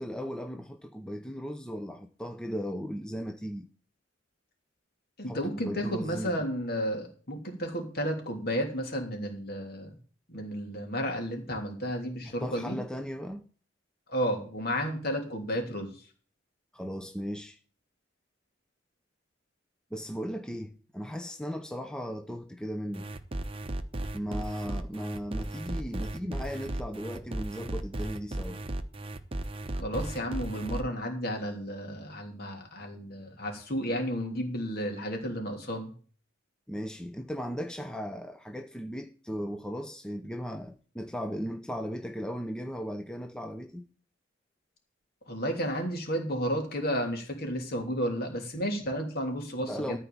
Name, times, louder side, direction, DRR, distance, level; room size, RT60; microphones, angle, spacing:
voice 1, 0.0-3.7 5.3-6.3 12.3-13.4 16.7-17.6 19.9-23.1 24.1-28.6 36.7-43.9 49.6-50.0, equal, 5° left, 0.7 m, -37 dB
voice 2, 5.2-10.0 10.3-12.8 14.1-16.0 29.7-35.9 45.3-50.0, equal, 55° left, 3.1 m, -32 dB
sound 1, 22.9-30.8, right 1 dB, 30° right, 0.9 m, -35 dB
13.5 x 4.7 x 8.7 m
head